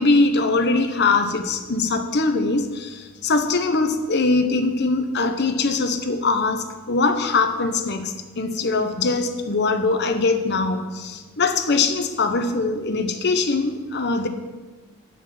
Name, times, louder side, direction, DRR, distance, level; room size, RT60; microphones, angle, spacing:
voice 1, 0.0-14.3, left 3 dB, 55° left, 7 dB, 0.9 m, -22 dB
9.8 x 5.8 x 7.5 m, 1.3 s
head